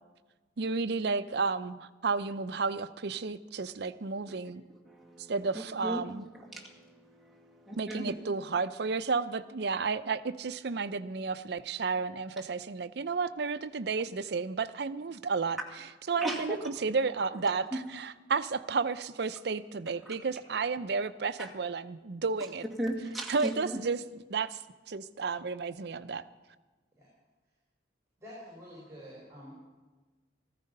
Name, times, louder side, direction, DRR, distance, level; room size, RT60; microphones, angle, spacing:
voice 1, 0.6-4.6 5.3-6.3 7.7-22.6 23.3-24.6 24.9-26.2, right 4 dB, 65° right, 13 dB, 0.6 m, -32 dB
voice 2, 4.9-5.3 5.8-6.1 6.3-8.1 16.2-16.6 20.1-20.2 22.8-23.8, right 1 dB, ahead, -4 dB, 2.2 m, -36 dB
voice 3, 28.2-29.5, equal, 15° right, -5 dB, 4.4 m, -48 dB
14.5 x 14.0 x 5.4 m, 1.3 s
head